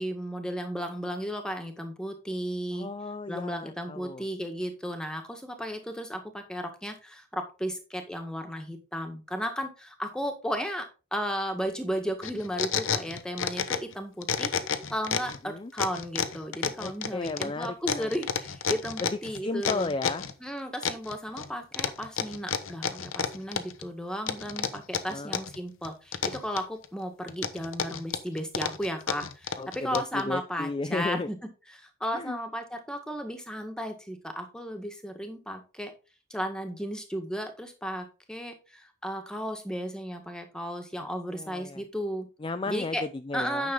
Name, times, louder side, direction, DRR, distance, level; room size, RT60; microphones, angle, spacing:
voice 1, 0.0-2.9 3.3-10.9 11.1-14.5 14.9-19.9 20.4-31.4 31.7-35.9 36.3-42.3 42.7-43.0 43.3-43.7, equal, 5° left, 5 dB, 1.6 m, -34 dB
voice 2, 2.7-4.2 15.4-15.7 16.8-18.3 19.0-20.3 21.4-21.5 25.1-25.4 29.6-31.3 32.1-32.4 41.0-41.8 42.4-43.7, left 3 dB, 25° left, 10 dB, 0.4 m, -34 dB
sound 1, 12.2-13.9 14.2-15.4 15.8-20.3 20.8-21.5 21.7-23.8 24.3-25.6 25.8-26.9 27.3-30.2, left 6 dB, 85° left, 1.0 m, -30 dB
9.7 x 6.7 x 3.9 m, 0.31 s
head